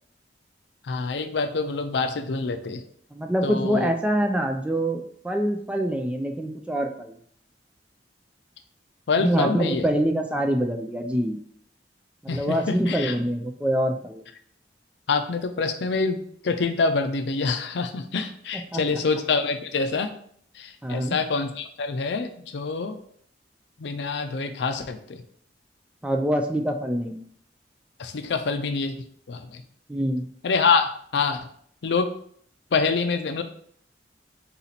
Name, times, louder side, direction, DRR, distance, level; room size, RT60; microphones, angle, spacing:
voice 1, 0.9-2.8 3.4-3.9 9.1-9.9 12.3-13.1 15.1-20.1 20.6-23.0 23.8-25.2 28.0-29.0 29.3-29.6 30.4-31.4 31.8-32.1 32.7-33.4, left 4 dB, 75° left, 8 dB, 0.5 m, -26 dB
voice 2, 3.1-7.1 9.2-11.4 12.2-14.2 18.7-18.8 20.8-21.2 26.0-27.2 29.9-30.3, right 1 dB, 5° right, 3 dB, 0.3 m, -25 dB
4.0 x 2.9 x 4.0 m, 0.63 s
head